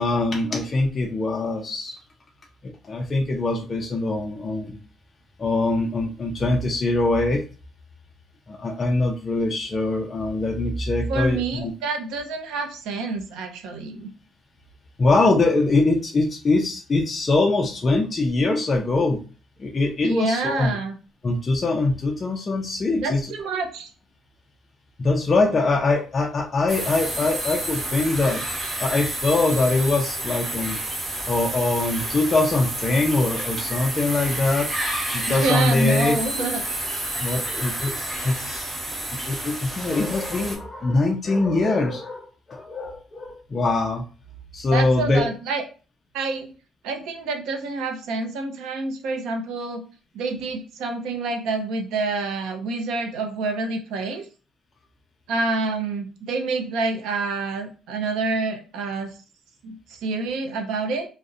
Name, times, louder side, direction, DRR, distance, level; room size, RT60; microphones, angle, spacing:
voice 1, 0.0-2.0 2.6-4.8 5.4-7.4 8.5-11.7 15.0-19.2 19.6-20.7 21.2-23.3 25.0-28.4 28.8-30.8 31.3-34.7 35.1-36.2 37.2-38.7 39.1-44.0 44.5-45.3, left 2 dB, 25° left, 0 dB, 0.3 m, -23 dB
voice 2, 11.1-14.1 20.0-21.0 23.0-23.9 35.3-36.6 44.7-45.6 46.1-46.5 46.8-49.8 50.1-54.3 55.3-59.1 59.6-61.1, right 3 dB, 85° right, 5 dB, 0.5 m, -27 dB
sound 1, 26.7-40.5, right 1 dB, 25° right, 0.7 m, -30 dB
2.6 x 2.0 x 2.4 m, 0.36 s
cardioid pair, 160°, 0 cm